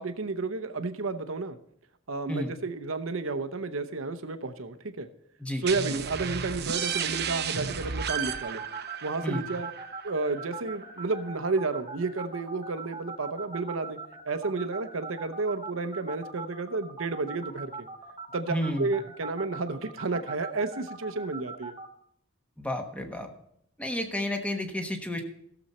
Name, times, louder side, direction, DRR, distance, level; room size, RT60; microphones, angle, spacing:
voice 1, 0.0-1.6 2.1-5.1 5.5-8.6 9.0-9.7 10.0-14.0 14.3-17.9 18.3-21.8, right 3 dB, 80° right, 10 dB, 0.8 m, -31 dB
sound 1, 5.7-11.1, right 7 dB, 55° right, 0.8 m, -34 dB
sound 2, 7.7-21.9, right 4 dB, 25° right, 1.1 m, -40 dB
voice 2, 18.5-18.9 22.6-23.3 23.8-25.2, left 1 dB, 5° left, 4 dB, 1.2 m, -31 dB
15.5 x 7.1 x 4.2 m, 0.73 s
head